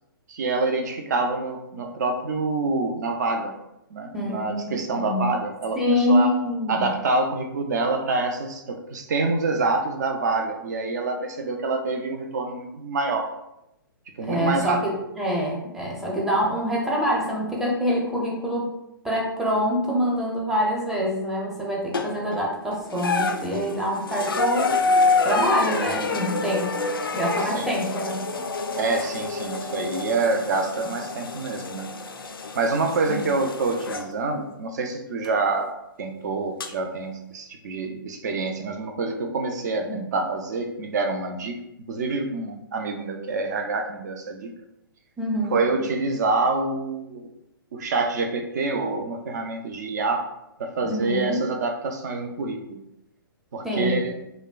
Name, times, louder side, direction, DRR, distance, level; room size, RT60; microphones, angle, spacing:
voice 1, 0.3-3.5 3.9-6.3 6.7-13.3 14.2-14.8 27.5-27.7 28.8-31.9 32.5-35.7 36.0-41.6 41.9-44.5 45.5-47.3 47.7-50.3 50.6-52.8 53.5-54.1, right 3 dB, 50° right, 4 dB, 0.5 m, -26 dB
voice 2, 4.1-5.4 5.8-6.9 14.2-18.7 19.0-24.7 25.2-26.8 27.1-28.3 33.1-33.2 39.9-40.0 45.2-45.6 50.8-51.4 53.6-54.0, equal, 5° right, -4 dB, 0.6 m, -25 dB
sound 1, 21.9-22.4 22.9-34.1 35.2-35.3 36.6-36.7, left 3 dB, 75° left, 0.4 m, -27 dB
5.0 x 2.1 x 2.3 m, 0.86 s
figure-of-eight pair, 120°, 12 cm